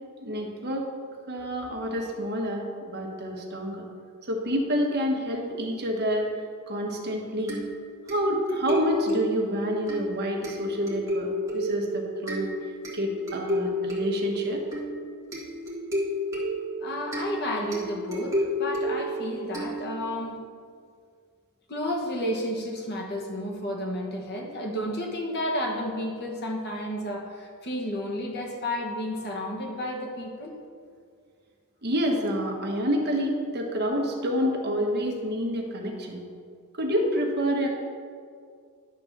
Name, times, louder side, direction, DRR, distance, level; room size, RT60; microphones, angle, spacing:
voice 1, 0.2-0.9 1.3-3.9 4.3-6.3 6.7-7.6 8.1-12.5 12.9-14.6 31.8-36.2 36.8-37.7, equal, 45° right, 0 dB, 1.3 m, -28 dB
sound 1, 7.5-20.2, equal, 15° right, 1.7 m, -32 dB
voice 2, 16.8-20.4 21.7-30.5, left 1 dB, 50° left, 0 dB, 1.3 m, -31 dB
10.5 x 3.8 x 6.6 m, 2.1 s
head